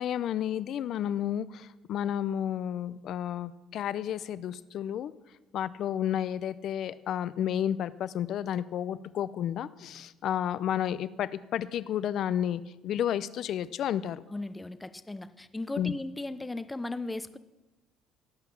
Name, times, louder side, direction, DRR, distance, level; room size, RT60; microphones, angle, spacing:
voice 1, 0.0-5.1 5.5-14.2 15.8-15.9, left 10 dB, 60° left, 16 dB, 0.6 m, -31 dB
voice 2, 14.3-17.4, left 2 dB, 10° left, 13 dB, 0.7 m, -36 dB
17.0 x 5.8 x 7.2 m, 1.1 s
cardioid pair, 100°, 0 cm